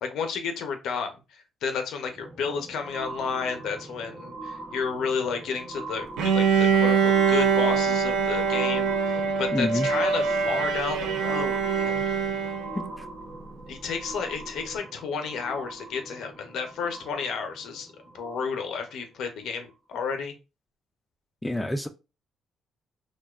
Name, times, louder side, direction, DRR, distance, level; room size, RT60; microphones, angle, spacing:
voice 1, 0.0-12.0 13.7-17.9 18.1-20.3, left 5 dB, 80° left, 5 dB, 0.5 m, -32 dB
sound 1, 2.1-18.9 19.6-19.7, right 2 dB, 45° right, 0.7 m, -42 dB
Bowed string instrument, 6.2-12.9, right 6 dB, 90° right, 0.3 m, -24 dB
voice 2, 9.5-9.9 12.7-13.1 21.4-21.9, left 1 dB, 10° left, 6 dB, 0.3 m, -28 dB
2.5 x 2.1 x 2.3 m, 0.28 s
cardioid pair, 90°, 0 cm